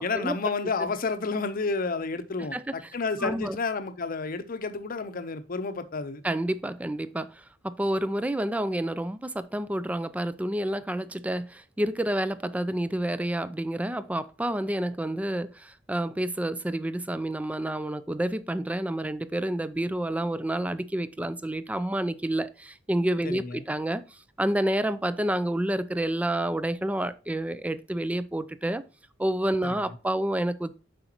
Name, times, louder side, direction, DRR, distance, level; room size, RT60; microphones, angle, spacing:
voice 1, 0.0-6.2 23.2-23.6 29.6-29.8, left 4 dB, 45° left, 0.7 m, -30 dB
voice 2, 3.2-3.6 6.2-28.8 29.2-30.7, right 1 dB, 5° right, 0.3 m, -29 dB
7.8 x 5.1 x 2.9 m
head